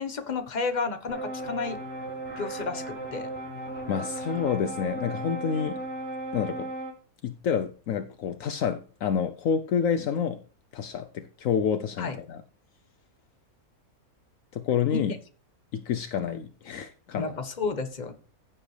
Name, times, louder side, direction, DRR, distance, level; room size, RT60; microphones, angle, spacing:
voice 1, 0.0-1.8 2.4-3.3 12.0-12.2 14.9-15.0 17.1-18.1, left 4 dB, 30° left, 1.2 m, -31 dB
sound 1, 1.1-6.9, right 2 dB, 5° left, 5.1 m, -36 dB
voice 2, 3.9-5.8 6.3-6.7 7.2-10.4 10.7-12.4 14.5-15.1 15.7-17.3, left 7 dB, 70° left, 1.0 m, -28 dB
15.0 x 7.6 x 3.3 m
omnidirectional pair, 1.5 m